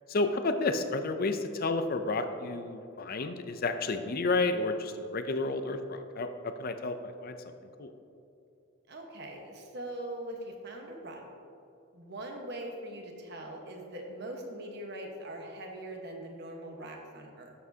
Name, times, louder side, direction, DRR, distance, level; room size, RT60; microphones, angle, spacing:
voice 1, 0.1-7.4 7.8-7.9, left 3 dB, 45° left, 8 dB, 0.5 m, -31 dB
voice 2, 8.9-11.3 11.9-17.5, right 1 dB, 55° right, 1 dB, 1.3 m, -42 dB
12.5 x 7.1 x 2.8 m, 2.7 s
head